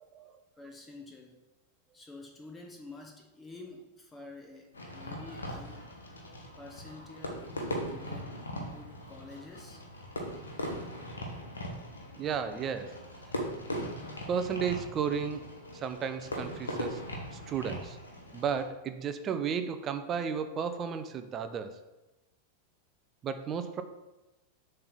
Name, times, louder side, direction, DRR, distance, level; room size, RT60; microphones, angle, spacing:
voice 1, 0.6-1.4 1.9-5.9 6.6-7.6 7.9-9.8, left 2 dB, 15° left, 1 dB, 1.1 m, -49 dB
Fireworks, 4.7-18.6, equal, 75° left, 1.2 m, -40 dB
voice 2, 12.2-13.0 14.3-15.5 15.7-17.0 17.3-18.0 18.3-21.8 23.2-23.8, right 7 dB, 30° right, 9 dB, 0.6 m, -33 dB
7.0 x 3.4 x 5.7 m, 1.0 s
figure-of-eight pair, 90°, 0 cm